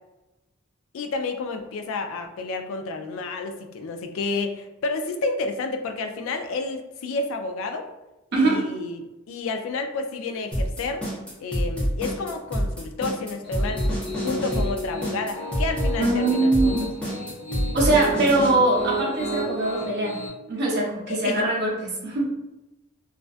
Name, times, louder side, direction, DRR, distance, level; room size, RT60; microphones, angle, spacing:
voice 1, 0.9-7.9 8.3-11.0 11.4-13.8 14.2-16.8 21.1-21.5, left 3 dB, 70° left, 6 dB, 0.3 m, -30 dB
sound 1, 10.5-18.5, equal, 5° left, 0.6 m, -26 dB
Piano, 13.4-20.3, equal, 55° left, 0.8 m, -32 dB
voice 2, 16.0-16.9 17.7-20.2 20.5-22.3, right 2 dB, 55° right, -3 dB, 0.7 m, -22 dB
2.4 x 2.1 x 2.4 m, 1.0 s
head